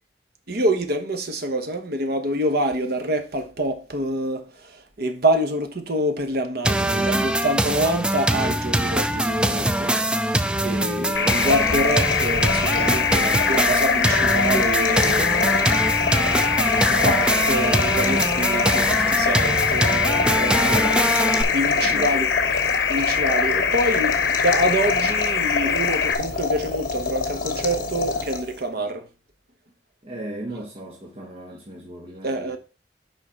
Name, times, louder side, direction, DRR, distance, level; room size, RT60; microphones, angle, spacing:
voice 1, 0.5-9.9 10.6-15.7 16.8-20.8 21.5-29.1 32.2-32.6, right 1 dB, 60° right, 1.1 m, -26 dB
sound 1, 6.6-21.4, right 1 dB, 5° right, 0.4 m, -23 dB
voice 2, 10.6-11.1 20.6-21.1 21.8-22.1 30.0-32.6, right 1 dB, 35° right, 1.1 m, -36 dB
sound 2, 11.1-26.1, left 6 dB, 70° left, 0.8 m, -23 dB
sound 3, 11.3-28.7, left 3 dB, 55° left, 1.2 m, -28 dB
6.4 x 5.0 x 4.5 m
head